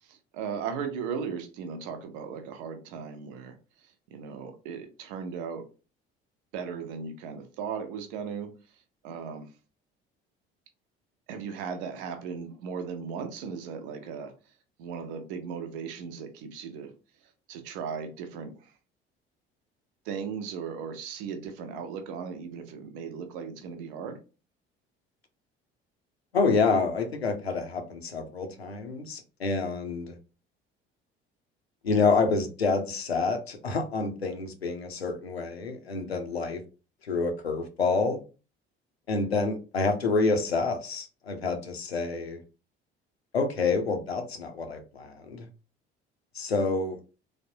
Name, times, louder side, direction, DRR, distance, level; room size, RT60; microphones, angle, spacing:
voice 1, 0.1-3.5 4.1-5.7 6.5-8.5 9.0-9.5 11.3-14.3 14.8-16.9 17.5-18.7 20.1-24.2, right 6 dB, 60° right, 0.7 m, -37 dB
voice 2, 26.3-30.2 31.8-36.6 37.1-38.2 39.1-42.4 43.3-45.5 46.3-47.0, left 4 dB, 85° left, 0.5 m, -28 dB
3.3 x 2.1 x 2.7 m
figure-of-eight pair, 55°, 30 cm